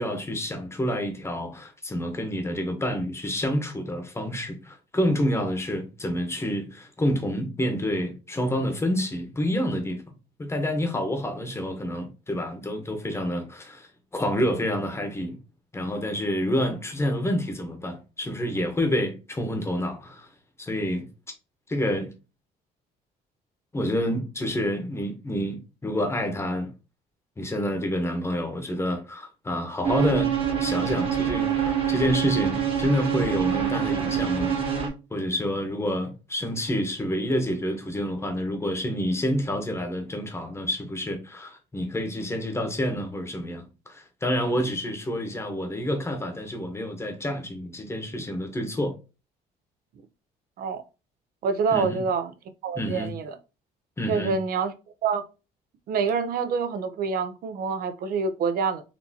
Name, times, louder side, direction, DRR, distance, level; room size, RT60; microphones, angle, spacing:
voice 1, 0.0-10.0 10.4-15.4 15.7-20.3 20.6-21.1 21.7-22.1 23.7-26.7 27.4-30.3 30.6-34.6 35.1-48.9 51.7-52.0 52.7-53.1 54.0-54.3, equal, 15° left, 1.0 m, -28 dB
sound 1, 29.8-34.9, right 8 dB, 30° right, 1.3 m, -25 dB
voice 2, 51.4-52.3 52.6-53.4 54.1-54.7 55.0-55.2 55.9-58.8, right 5 dB, 60° right, 0.6 m, -26 dB
4.3 x 2.7 x 2.8 m
cardioid pair, 110°, 17 cm